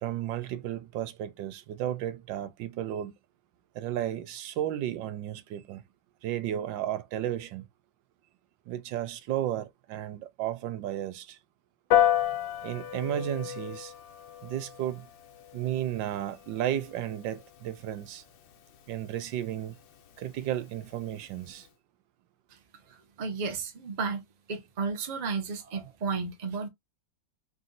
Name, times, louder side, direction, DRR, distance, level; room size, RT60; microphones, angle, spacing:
voice 1, 0.0-3.1 3.7-5.8 6.2-7.6 8.7-11.4 12.6-13.9 14.4-15.1 15.5-18.2 18.9-19.8 20.2-21.7, right 11 dB, 85° right, 1.4 m, -33 dB
Piano, 11.9-21.7, left 12 dB, 90° left, 1.5 m, -33 dB
voice 2, 22.9-24.2 24.5-26.7, right 5 dB, 35° right, 0.7 m, -33 dB
4.0 x 2.7 x 3.8 m
omnidirectional pair, 2.0 m